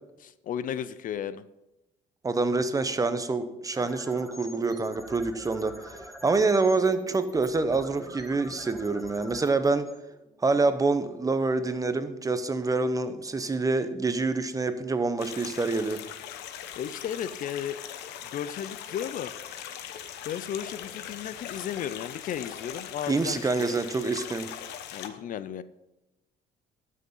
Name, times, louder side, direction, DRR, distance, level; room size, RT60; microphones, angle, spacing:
voice 1, 0.2-1.4 16.8-17.8 18.3-19.3 20.3-23.8 24.9-25.6, left 9 dB, 50° left, 15 dB, 0.5 m, -34 dB
voice 2, 2.2-9.9 10.4-16.0 23.1-24.5, right 3 dB, 20° right, 11 dB, 0.9 m, -26 dB
sound 1, 3.7-10.7, equal, ahead, 1.7 m, -46 dB
sound 2, 15.2-25.1, left 10 dB, 85° left, 1.0 m, -40 dB
12.5 x 6.5 x 5.5 m, 0.97 s
cardioid pair, 110°, 17 cm